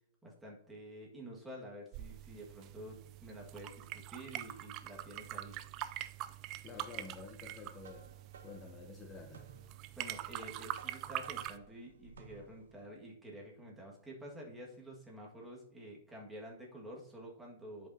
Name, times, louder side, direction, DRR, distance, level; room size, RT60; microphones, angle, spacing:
voice 1, 0.2-5.6 10.0-17.9, right 1 dB, 10° right, -2 dB, 1.7 m, -49 dB
sound 1, 1.9-11.6, right 14 dB, 35° right, 0.3 m, -44 dB
voice 2, 6.6-8.1 8.4-9.5, left 5 dB, 25° left, 3 dB, 0.7 m, -50 dB
sound 2, 7.8-12.9, right 5 dB, 90° right, 1.0 m, -58 dB
10.5 x 5.1 x 2.7 m, 0.72 s
hypercardioid pair, 150°, 0 cm